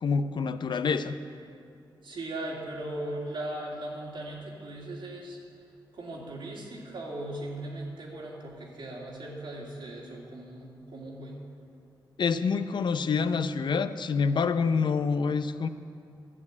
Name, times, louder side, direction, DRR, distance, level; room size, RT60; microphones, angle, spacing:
voice 1, 0.0-1.1 12.2-15.7, left 5 dB, 65° left, 11 dB, 0.5 m, -27 dB
voice 2, 2.0-5.4 5.9-11.4, right 1 dB, 75° right, -3 dB, 2.5 m, -38 dB
12.0 x 7.2 x 8.3 m, 2.4 s
cardioid pair, 70°, 9 cm